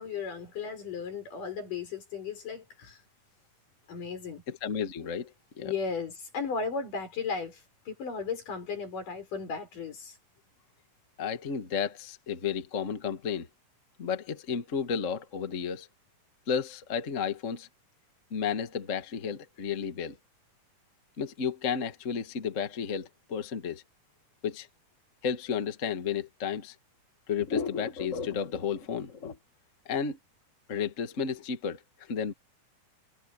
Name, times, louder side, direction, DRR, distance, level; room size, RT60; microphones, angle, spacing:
voice 1, 0.0-3.0 3.9-4.4 5.6-10.2, left 5 dB, 75° left, 6.9 m, -35 dB
voice 2, 4.5-5.7 11.2-13.5 14.0-15.9 16.5-17.7 18.3-20.2 21.2-23.8 24.4-24.7 25.2-26.8 27.3-29.4 29.8-30.2 30.7-32.3, left 6 dB, 40° left, 1.1 m, -32 dB
omnidirectional pair, 3.8 m